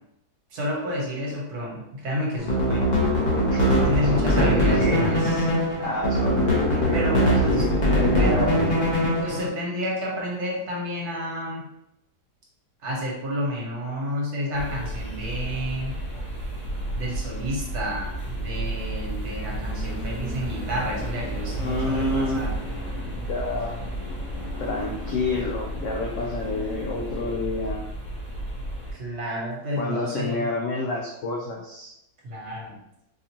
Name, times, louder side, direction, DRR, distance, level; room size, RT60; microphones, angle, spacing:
voice 1, 0.5-2.9 3.6-5.4 6.9-7.7 8.1-8.5 9.2-11.7 12.8-16.0 17.0-22.5 29.0-30.5 32.2-32.8, equal, 65° right, -3 dB, 1.5 m, -30 dB
sound 1, 2.4-9.5, equal, 40° left, 0.7 m, -22 dB
voice 2, 4.1-5.1 5.8-8.6 21.6-22.4 23.3-23.8 24.6-27.8 29.8-31.9, left 2 dB, 85° left, -1 dB, 0.6 m, -28 dB
sound 2, 14.5-28.9, right 1 dB, 65° left, 1.6 m, -32 dB
4.4 x 2.4 x 2.9 m, 0.85 s
omnidirectional pair, 1.8 m